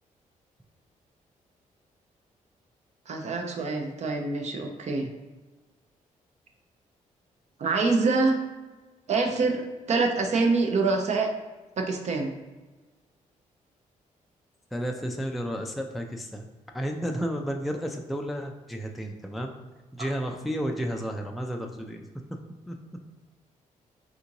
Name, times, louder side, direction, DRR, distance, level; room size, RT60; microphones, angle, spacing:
voice 1, 3.1-5.1 7.6-8.4 9.1-9.6 9.9-11.3 11.8-12.3 20.0-20.1, right 3 dB, 55° right, 3 dB, 0.5 m, -25 dB
voice 2, 14.7-16.5 16.7-19.5 19.9-22.0 22.7-22.8, equal, ahead, 2 dB, 0.3 m, -32 dB
3.6 x 2.5 x 2.8 m, 1.2 s
cardioid pair, 80°, 14 cm